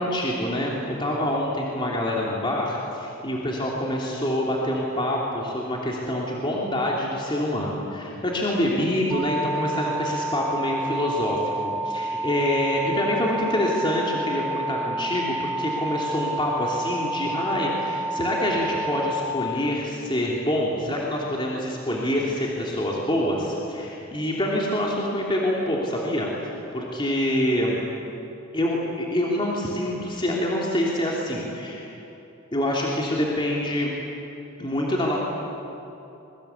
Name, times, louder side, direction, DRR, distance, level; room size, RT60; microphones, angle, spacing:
voice 1, 0.0-26.3 26.7-27.8 28.5-31.9 32.5-33.9 34.6-35.2, left 1 dB, 25° left, -3 dB, 3.1 m, -26 dB
sound 1, 9.1-19.1, right 2 dB, 10° right, 2.9 m, -29 dB
26.0 x 23.0 x 8.4 m, 2.9 s
head